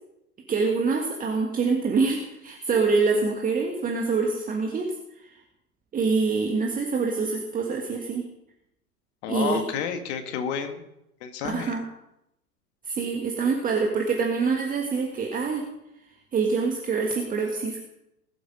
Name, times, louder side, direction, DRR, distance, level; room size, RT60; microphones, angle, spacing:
voice 1, 0.5-4.9 5.2-5.3 5.9-8.3 9.3-9.6 11.4-11.8 12.8-15.6 16.3-17.8, right 4 dB, 15° right, 1 dB, 1.6 m, -25 dB
voice 2, 9.2-10.8 11.2-11.7, left 7 dB, 45° left, 6 dB, 2.0 m, -30 dB
20.0 x 8.3 x 5.2 m, 0.85 s
figure-of-eight pair, 95°, 47 cm